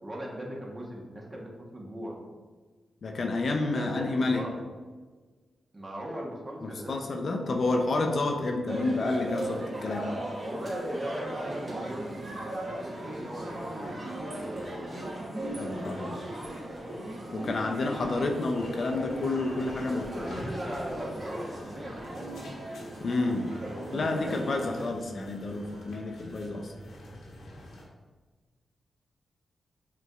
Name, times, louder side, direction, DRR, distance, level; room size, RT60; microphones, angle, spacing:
voice 1, 0.0-2.2 3.7-4.6 5.7-7.0 10.4-12.2 12.7-14.9 19.8-22.3 23.7-25.0, equal, 30° right, -1 dB, 1.0 m, -39 dB
voice 2, 3.0-4.5 6.6-10.0 15.6-16.2 17.3-20.0 23.0-23.5 23.9-26.7, left 2 dB, 60° left, 3 dB, 0.5 m, -29 dB
sound 1, 8.7-24.8, right 1 dB, 50° right, 1.4 m, -38 dB
sound 2, 18.5-27.8, equal, 80° left, 1.0 m, -46 dB
5.2 x 3.0 x 2.4 m, 1.4 s
cardioid pair, 55°, 0 cm